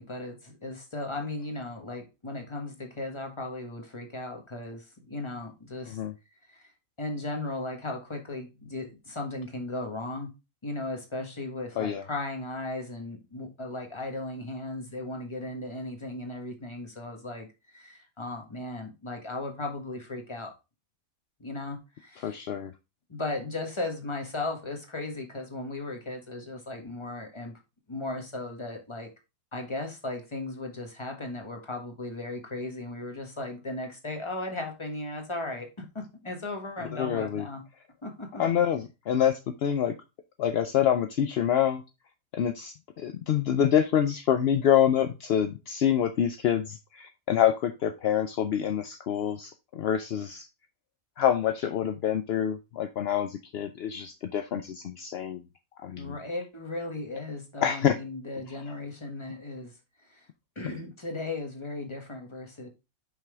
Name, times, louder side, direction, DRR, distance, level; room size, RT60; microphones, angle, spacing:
voice 1, 0.0-6.0 6.5-6.6 7.0-10.3 10.6-17.5 17.7-20.5 21.4-22.5 23.1-27.6 27.9-29.1 29.5-37.6 38.0-38.4 55.9-59.7 60.1-60.3 60.5-62.7, left 2 dB, 20° left, 1.5 m, -36 dB
voice 2, 22.2-22.7 36.9-37.5 38.4-39.9 40.4-41.8 42.3-50.5 51.2-55.4 55.8-56.2 57.6-58.0, left 9 dB, 60° left, 0.6 m, -26 dB
5.8 x 5.5 x 3.3 m
omnidirectional pair, 1.5 m